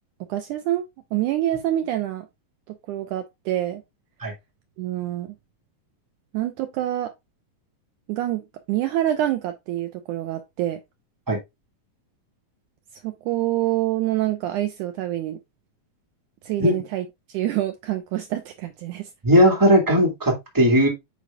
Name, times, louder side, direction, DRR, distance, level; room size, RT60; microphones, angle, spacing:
voice 1, 0.3-0.8 1.1-2.3 2.7-3.8 4.8-5.3 6.3-7.1 8.1-10.8 13.0-15.4 16.4-19.1, right 13 dB, 85° right, 1.8 m, -26 dB
voice 2, 19.2-20.9, equal, 10° right, 0.9 m, -17 dB
7.9 x 5.2 x 2.3 m
omnidirectional pair, 4.1 m